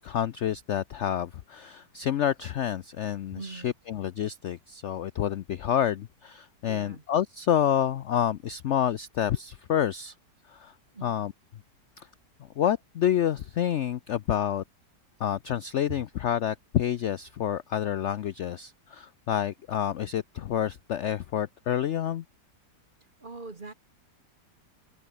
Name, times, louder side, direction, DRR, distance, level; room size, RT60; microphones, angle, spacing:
voice 1, 0.0-10.1 10.5-10.7 11.0-11.3 12.0-12.1 12.4-14.6 15.2-22.2, left 10 dB, 75° left, 0.6 m, -28 dB
voice 2, 3.3-3.7 6.7-7.0 10.9-11.2 23.2-23.7, right 3 dB, 30° right, 1.6 m, -42 dB
omnidirectional pair, 1.9 m